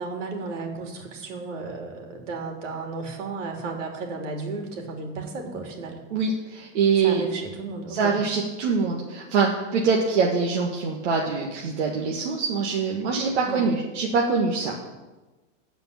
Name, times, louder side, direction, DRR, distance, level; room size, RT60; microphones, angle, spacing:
voice 1, 0.0-6.0 7.0-8.1 13.4-13.8, right 3 dB, 80° right, 2 dB, 3.2 m, -34 dB
voice 2, 6.1-7.2 7.9-14.7, right 5 dB, 65° right, -2 dB, 1.9 m, -24 dB
14.5 x 5.2 x 8.7 m, 1.2 s
supercardioid pair, 165°, 37 cm